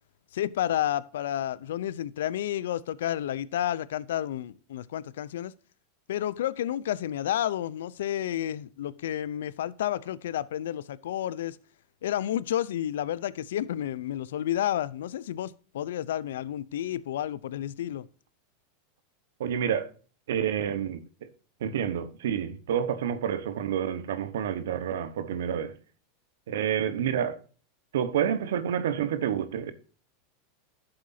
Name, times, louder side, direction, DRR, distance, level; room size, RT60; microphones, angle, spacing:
voice 1, 0.3-5.5 6.1-11.6 12.0-18.1, left 11 dB, 80° left, 0.5 m, -31 dB
voice 2, 19.4-19.9 20.3-21.3 21.6-25.7 26.5-27.4 27.9-29.7, right 9 dB, 80° right, 1.2 m, -29 dB
11.5 x 7.8 x 2.7 m
hypercardioid pair, 110°, 0 cm